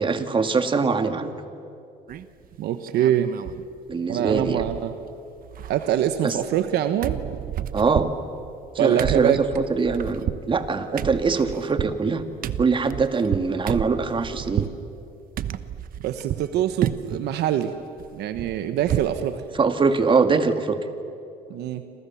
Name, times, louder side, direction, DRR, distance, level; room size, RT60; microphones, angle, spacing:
voice 1, 0.0-1.3 3.9-4.7 6.2-6.4 7.7-8.1 8.8-12.2 12.6-14.7 19.6-20.8, right 4 dB, 30° right, 8 dB, 1.9 m, -22 dB
sound 1, 2.1-2.5 2.8-3.6 3.9-4.0 4.3-5.1 5.4-6.7 7.0-14.8 15.4-16.5 16.8-17.3 17.6-19.2 19.6-19.7 20.0-20.2, right 10 dB, 55° right, 1.0 m, -31 dB
voice 2, 2.6-3.3 4.1-4.9 5.7-7.2 8.8-9.4 16.0-17.7 18.1-19.4 21.5-21.8, right 11 dB, 80° right, 9 dB, 1.2 m, -24 dB
29.0 x 26.5 x 7.2 m, 2.5 s
cardioid pair, 110°, 17 cm